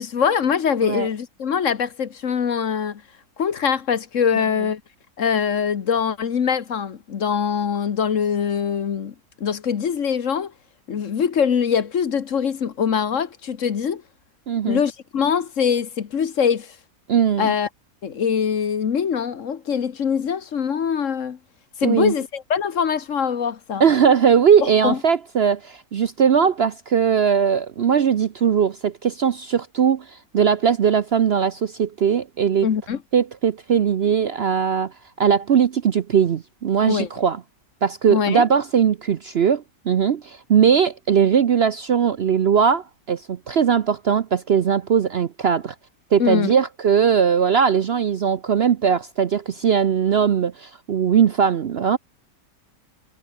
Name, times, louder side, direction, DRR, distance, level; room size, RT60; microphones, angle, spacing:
voice 1, 0.0-3.0 3.4-4.8 5.2-9.1 9.4-10.5 10.9-14.0 14.6-16.7 17.4-17.7 18.0-21.4 21.8-23.8 24.6-25.0 32.6-33.0 36.9-37.1 38.1-38.5 46.2-46.5, left 7 dB, 55° left, 1.4 m, -23 dB
voice 2, 14.5-14.8 17.1-17.5 21.8-22.1 23.8-32.7 33.1-37.4 37.8-45.7 46.1-52.0, right 7 dB, 55° right, 0.8 m, -19 dB
omnidirectional pair, 1.6 m